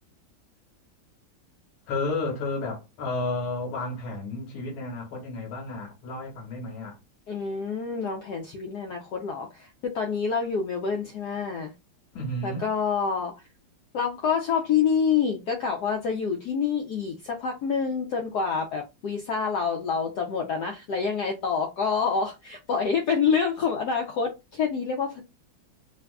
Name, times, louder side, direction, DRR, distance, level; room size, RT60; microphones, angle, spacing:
voice 1, 1.9-7.0 12.1-12.7, left 2 dB, 90° left, 1.9 m, -32 dB
voice 2, 7.3-11.7 12.4-13.3 13.9-25.2, left 6 dB, 70° left, 1.0 m, -27 dB
3.5 x 2.5 x 2.3 m
omnidirectional pair, 2.2 m